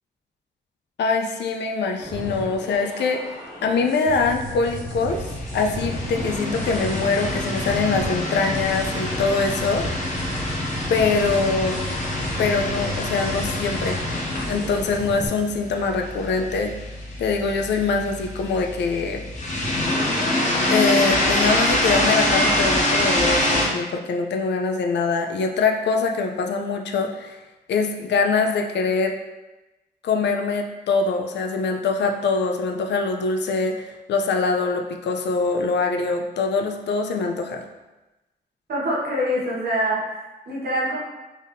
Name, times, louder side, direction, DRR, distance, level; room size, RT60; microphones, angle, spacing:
voice 1, 1.0-3.3 3.6-5.3 5.5-9.8 10.9-11.8 12.4-14.0 14.5-16.7 17.2-19.2 20.7-27.4 27.7-29.1 30.0-37.6, left 4 dB, 85° left, 3 dB, 0.5 m, -23 dB
sound 1, 2.0-15.3, equal, 20° right, 1.3 m, -33 dB
sound 2, 5.1-23.7, left 1 dB, 45° left, 0.8 m, -25 dB
voice 2, 38.7-41.0, equal, 65° right, -5 dB, 1.3 m, -25 dB
4.0 x 3.5 x 2.6 m, 1.1 s
wide cardioid pair, 140°, 18 cm